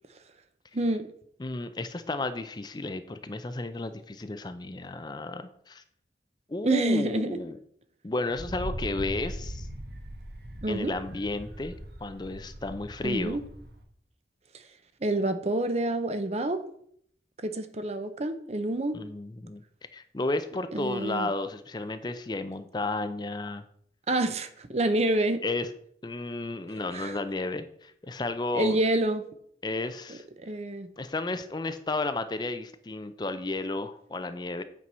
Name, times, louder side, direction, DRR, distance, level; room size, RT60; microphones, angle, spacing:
voice 1, 0.7-1.1 6.6-7.4 10.6-10.9 13.0-13.4 15.0-16.6 17.4-19.0 20.7-21.3 24.1-25.4 26.9-27.2 28.5-29.2 30.1-30.9, right 1 dB, 35° right, 10 dB, 0.7 m, -28 dB
voice 2, 1.4-5.8 6.5-7.6 8.0-9.7 10.7-11.8 12.0-13.4 18.9-19.6 19.9-23.6 25.4-25.7 26.0-28.8 29.6-30.2 31.0-34.6, left 2 dB, 25° left, 10 dB, 0.5 m, -33 dB
Wind, 8.3-13.8, equal, 60° right, 1.4 m, -40 dB
8.5 x 4.6 x 5.5 m, 0.65 s
head